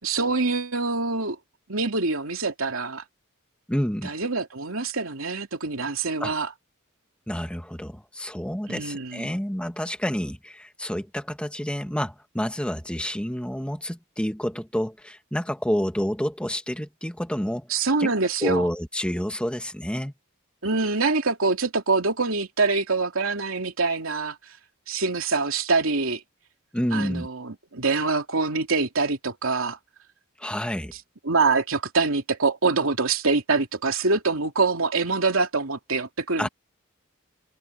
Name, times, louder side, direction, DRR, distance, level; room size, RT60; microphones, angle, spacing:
voice 1, 0.0-1.4 1.7-3.0 4.0-6.5 8.7-9.3 17.7-18.7 20.6-24.4 24.9-26.2 26.9-29.8 31.2-36.5, right 3 dB, 80° right, 2.8 m, -25 dB
voice 2, 3.7-4.1 6.2-6.3 7.3-17.7 18.0-18.1 18.4-20.1 26.7-27.3 30.4-30.9 36.4-36.5, equal, 5° left, 1.7 m, -29 dB
head